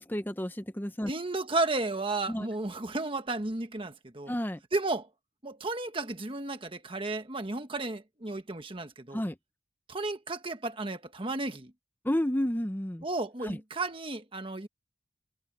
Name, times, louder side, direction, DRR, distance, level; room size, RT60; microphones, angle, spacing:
voice 1, 0.0-1.1 2.3-2.5 4.3-4.6 9.1-9.4 12.0-13.0 13.4-13.6, equal, 10° left, 0.8 m, -31 dB
voice 2, 1.1-4.3 4.7-5.1 5.4-9.2 9.9-11.7 13.0-14.7, right 2 dB, 25° right, 1.4 m, -33 dB
head